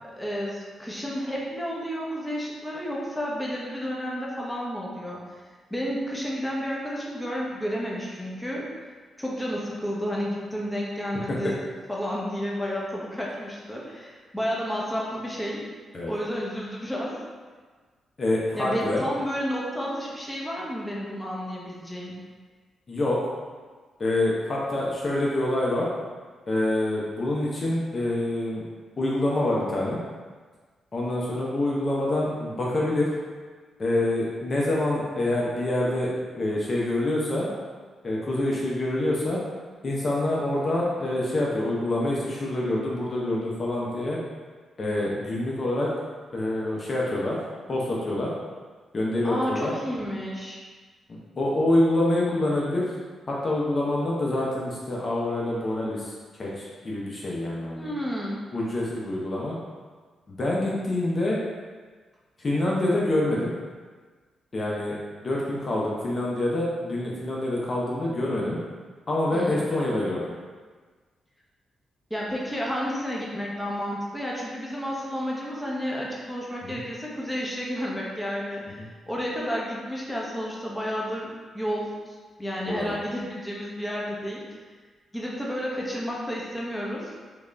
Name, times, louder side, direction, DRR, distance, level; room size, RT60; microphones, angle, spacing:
voice 1, 0.2-8.7 9.2-15.6 16.1-17.2 18.5-22.2 49.2-50.6 57.7-58.4 69.3-69.6 72.1-84.6 85.1-87.1, equal, 5° left, -4 dB, 0.9 m, -31 dB
voice 2, 18.2-19.0 22.9-23.2 24.0-25.9 26.5-28.6 29.0-30.0 30.9-33.1 33.8-37.5 38.0-39.4 39.8-44.2 44.8-45.9 46.3-47.4 47.7-48.3 48.9-49.7 51.1-52.9 53.3-56.1 56.4-57.9 58.5-59.6 60.3-61.4 62.4-63.5 64.5-65.0 65.2-68.6 69.1-70.2 76.6-76.7 82.7-83.0, left 1 dB, 45° left, -4 dB, 0.6 m, -26 dB
3.4 x 2.4 x 3.3 m, 1.5 s
supercardioid pair, 60°, 0 cm